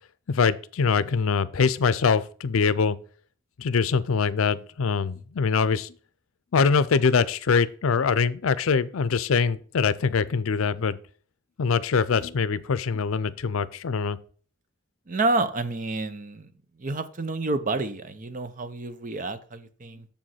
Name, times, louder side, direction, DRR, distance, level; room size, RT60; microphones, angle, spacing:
voice 1, 0.3-3.0 3.6-5.9 6.5-11.0 11.6-14.2, left 5 dB, 80° left, 0.5 m, -23 dB
voice 2, 15.1-16.5 16.8-20.1, right 2 dB, 40° right, 0.7 m, -29 dB
6.9 x 5.2 x 5.6 m
head